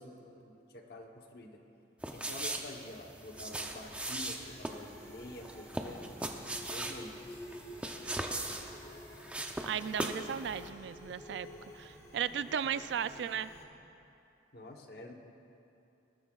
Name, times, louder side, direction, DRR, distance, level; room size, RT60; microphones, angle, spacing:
voice 1, 0.0-1.6 2.1-6.0 6.7-7.4 14.5-15.1, left 2 dB, 55° left, 2 dB, 1.0 m, -48 dB
sound 1, 2.0-10.3 10.6-10.7, right 1 dB, 5° right, 0.5 m, -39 dB
sound 2, 3.3-13.6, left 1 dB, 15° left, 1.0 m, -50 dB
voice 2, 9.6-11.5 11.7-13.5, right 8 dB, 75° right, 14 dB, 0.3 m, -35 dB
19.5 x 12.5 x 2.4 m, 2.8 s
head